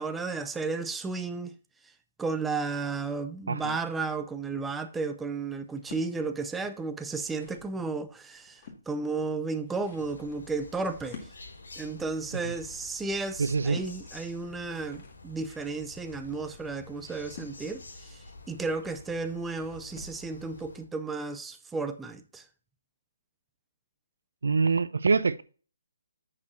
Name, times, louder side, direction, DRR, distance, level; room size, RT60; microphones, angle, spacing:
voice 1, 0.0-1.5 2.2-11.3 11.8-22.4, right 4 dB, 5° right, 0.4 m, -33 dB
sound 1, 5.6-6.1 6.8-7.7 8.2-8.8 9.4-20.2, left 4 dB, 30° left, 1.9 m, -51 dB
sound 2, 10.0-20.8, left 3 dB, 80° left, 3.7 m, -49 dB
voice 2, 13.4-13.8 24.4-25.4, right 4 dB, 85° right, 0.6 m, -25 dB
8.4 x 6.7 x 2.7 m
hypercardioid pair, 170°, 0 cm